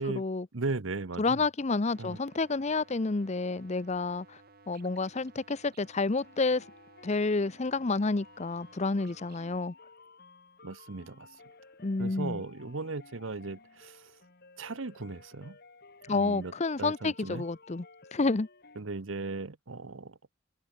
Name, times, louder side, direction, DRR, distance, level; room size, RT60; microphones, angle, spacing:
voice 1, 0.0-0.5 1.2-4.4 4.7-6.6 7.0-9.7 11.8-12.4 16.1-17.8 18.1-18.5, left 3 dB, 35° left, 0.7 m, -29 dB
voice 2, 0.5-1.4 2.0-2.2 10.6-11.3 12.0-14.1 14.6-15.6 16.1-17.4 18.8-20.2, right 3 dB, 85° right, 1.0 m, -37 dB
sound 1, 1.9-9.6, right 3 dB, 50° right, 2.4 m, -58 dB
sound 2, 6.2-18.8, left 3 dB, 55° left, 2.7 m, -56 dB
head